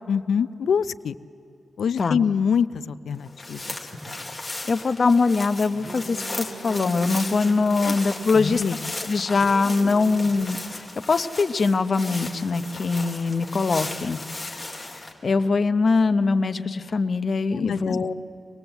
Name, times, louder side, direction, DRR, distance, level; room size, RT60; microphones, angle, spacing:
voice 1, 0.1-1.1 1.8-3.8 7.8-7.9 8.3-8.9 17.5-18.1, left 7 dB, 90° left, 15 dB, 0.5 m, -25 dB
sound 1, 3.2-15.1, left 2 dB, 10° left, 2.4 m, -36 dB
voice 2, 4.7-8.6 9.1-14.6 15.2-18.1, left 4 dB, 40° left, 10 dB, 0.8 m, -22 dB
sound 2, 5.7-8.6 8.9-10.5, right 4 dB, 90° right, 2.0 m, -40 dB
25.5 x 20.0 x 8.0 m, 2.9 s
wide cardioid pair, 165°, 0 cm